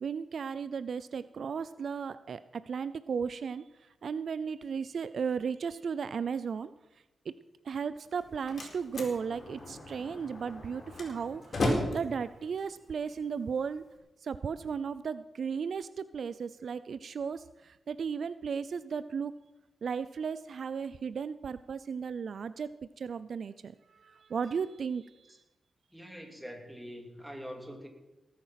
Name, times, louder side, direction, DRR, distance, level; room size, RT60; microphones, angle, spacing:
voice 1, 0.0-6.7 7.3-7.4 7.6-13.8 14.2-19.3 19.8-22.7 23.0-25.4, right 6 dB, 65° right, 15 dB, 0.5 m, -35 dB
Slam, 8.0-14.0, left 1 dB, 45° left, 4.1 m, -36 dB
voice 2, 25.9-27.9, equal, 5° right, 3 dB, 2.9 m, -44 dB
18.5 x 8.7 x 5.8 m, 1.0 s
cardioid pair, 90°, 0 cm